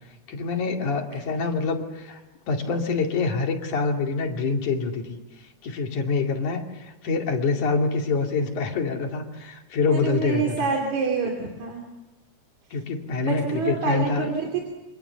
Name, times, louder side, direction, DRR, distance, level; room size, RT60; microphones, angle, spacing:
voice 1, 0.3-2.2 2.5-5.2 5.6-10.5 12.7-14.3, left 4 dB, 90° left, 2 dB, 3.9 m, -26 dB
voice 2, 9.9-11.9 13.2-14.6, right 5 dB, 75° right, 1 dB, 4.3 m, -27 dB
28.5 x 25.5 x 7.0 m, 1.1 s
omnidirectional pair, 3.4 m